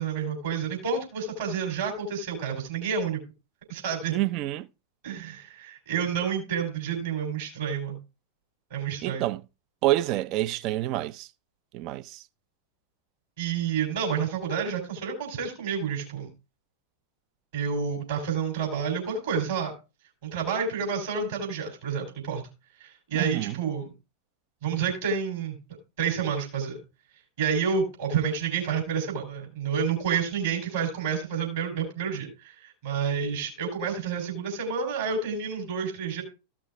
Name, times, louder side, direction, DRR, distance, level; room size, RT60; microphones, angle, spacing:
voice 1, 0.0-3.2 3.7-4.2 5.0-8.0 8.7-9.3 13.4-16.3 17.5-19.7 20.2-22.4 22.8-23.9 24.6-25.6 26.0-26.8 27.4-36.2, right 6 dB, 60° right, 3.8 m, -29 dB
voice 2, 4.1-4.7 9.0-9.4 9.8-11.3 11.7-12.2 23.1-23.5, right 15 dB, 40° right, 0.5 m, -27 dB
14.5 x 6.0 x 3.5 m
figure-of-eight pair, 90°, 0 cm